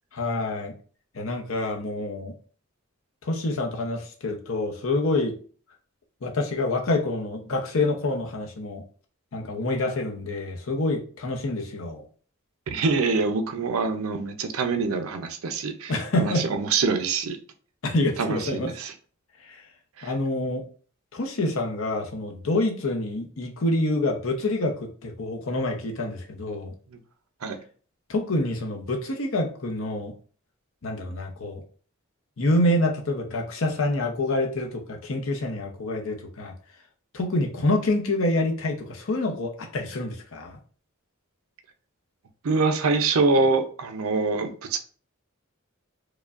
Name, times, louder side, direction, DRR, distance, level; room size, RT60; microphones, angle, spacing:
voice 1, 0.1-0.7 1.1-2.3 3.2-5.4 6.2-8.8 9.3-12.0 15.9-16.4 17.8-18.7 19.5-19.6 20.0-20.6 21.1-24.8 25.0-26.7 28.1-30.1 30.8-31.6 32.4-36.5 37.1-40.6, left 2 dB, 70° left, 2 dB, 0.7 m, -27 dB
voice 2, 12.7-17.4 18.2-18.9 20.0-20.1 27.4-27.6 42.4-44.8, right 4 dB, 90° right, 7 dB, 0.5 m, -25 dB
4.7 x 2.2 x 2.4 m, 0.41 s
head